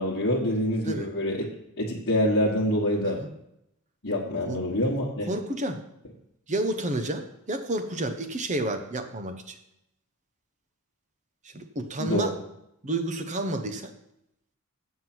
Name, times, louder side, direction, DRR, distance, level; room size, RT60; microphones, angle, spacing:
voice 1, 0.0-1.5 1.8-3.2 4.0-5.3 12.0-12.3, left 1 dB, 55° left, -4 dB, 1.4 m, -26 dB
voice 2, 5.3-5.8 6.5-9.6 11.4-12.4 12.8-13.9, right 1 dB, 35° right, 8 dB, 0.8 m, -30 dB
7.9 x 7.4 x 6.0 m, 0.81 s
head